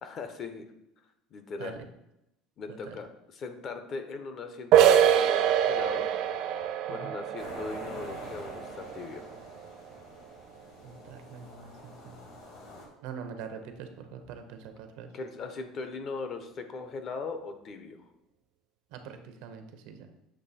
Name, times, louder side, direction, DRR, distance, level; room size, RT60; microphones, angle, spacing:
voice 1, 0.0-0.7 1.3-1.8 2.6-6.1 6.9-9.3 15.1-18.0, left 4 dB, 35° left, 7 dB, 0.6 m, -39 dB
sound 1, 4.7-10.2, right 10 dB, 50° right, 0.4 m, -25 dB
sound 2, 7.4-12.9, left 2 dB, 65° left, 1.7 m, -47 dB
voice 2, 10.8-12.3 13.0-15.1 18.9-20.1, right 6 dB, 75° right, 7 dB, 0.8 m, -44 dB
7.5 x 3.0 x 4.1 m, 0.85 s
cardioid pair, 160°, 0 cm